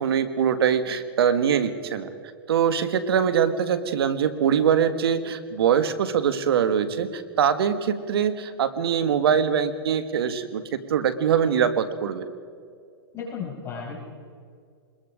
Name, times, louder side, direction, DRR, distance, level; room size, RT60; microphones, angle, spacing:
voice 1, 0.0-2.1 2.5-10.6 10.9-12.3, right 8 dB, 75° right, 10 dB, 1.7 m, -23 dB
voice 2, 13.1-14.0, left 6 dB, 20° left, -3 dB, 5.7 m, -34 dB
25.0 x 21.0 x 5.1 m, 2.2 s
hypercardioid pair, 135°, 13 cm